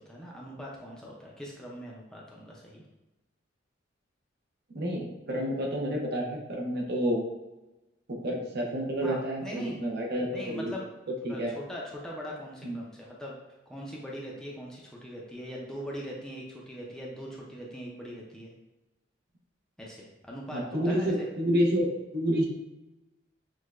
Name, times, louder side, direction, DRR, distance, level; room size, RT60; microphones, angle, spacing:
voice 1, 0.0-2.8 9.0-9.8 10.3-10.9 11.3-13.4 13.7-18.5 19.8-21.3, equal, 5° left, -4 dB, 0.5 m, -41 dB
voice 2, 4.7-7.2 8.1-10.7 11.2-11.5 12.6-12.8 20.5-22.5, equal, 55° right, -1 dB, 0.8 m, -29 dB
6.2 x 2.2 x 2.4 m, 1.0 s
head